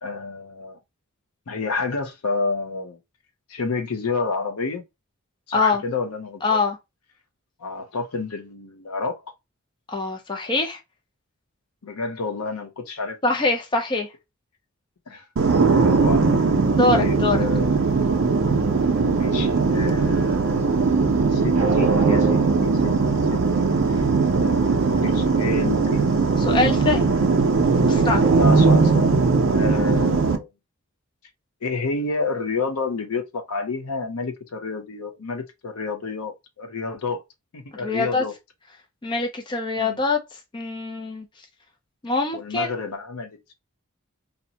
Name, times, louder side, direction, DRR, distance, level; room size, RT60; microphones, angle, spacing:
voice 1, 0.0-0.8 1.5-3.0 3.5-4.8 5.5-6.6 7.6-9.2 11.8-13.2 15.1-15.3 15.8-16.3 16.9-17.8 19.1-20.9 21.2-24.1 24.4-26.0 28.4-29.1 29.5-30.5 31.6-37.2 37.5-38.3 39.8-40.0 42.3-43.5, left 4 dB, 85° left, 0.6 m, -30 dB
voice 2, 6.4-6.8 9.9-10.8 13.2-14.1 16.8-17.4 26.4-27.1 27.8-28.2 37.8-38.2 39.0-40.2 40.5-41.2 42.0-42.7, left 3 dB, 20° left, 0.4 m, -23 dB
sound 1, 15.4-30.4, right 4 dB, 60° right, 0.5 m, -19 dB
2.6 x 2.1 x 2.7 m
head